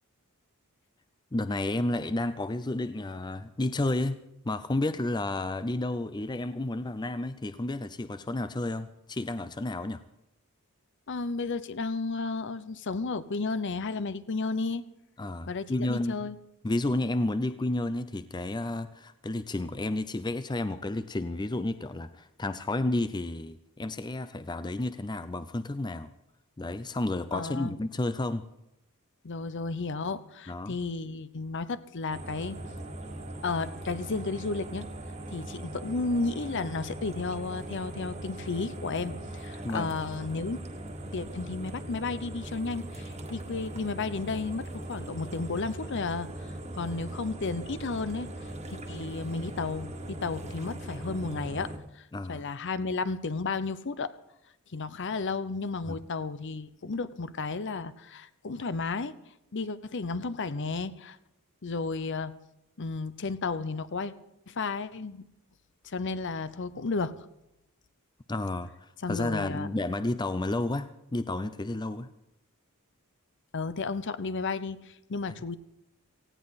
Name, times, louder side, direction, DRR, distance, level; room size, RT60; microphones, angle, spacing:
voice 1, 1.3-4.2 4.4-10.0 15.2-16.1 16.6-26.1 26.6-28.4 30.5-30.8 39.6-39.9 52.1-52.5 55.9-56.0 68.3-72.1, left 2 dB, 20° left, 12 dB, 0.5 m, -31 dB
voice 2, 11.1-14.8 15.5-16.4 27.3-27.8 29.2-32.6 33.4-34.9 35.3-40.6 41.1-46.3 46.7-54.1 54.7-59.2 59.5-61.2 61.6-62.3 62.8-64.1 64.5-65.3 65.8-67.2 69.0-69.7 73.5-75.6, left 3 dB, 55° left, 14 dB, 0.7 m, -33 dB
sound 1, 32.1-51.8, right 1 dB, 30° right, 1.7 m, -40 dB
18.0 x 16.0 x 4.1 m, 0.88 s
head